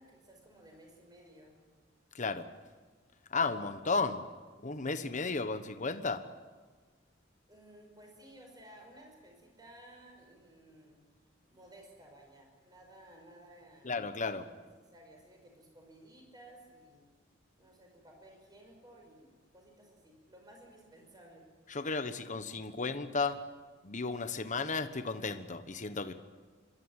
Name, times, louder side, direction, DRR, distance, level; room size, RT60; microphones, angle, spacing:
voice 1, 0.0-1.6 7.5-11.0 11.5-14.0 14.5-17.0 17.6-21.5, right 1 dB, 20° right, 1 dB, 5.7 m, -56 dB
voice 2, 2.1-2.5 3.3-4.2 4.6-6.3 13.8-14.5 21.7-23.4 23.8-26.1, left 4 dB, 40° left, 9 dB, 1.2 m, -34 dB
28.5 x 13.0 x 9.2 m, 1.4 s
head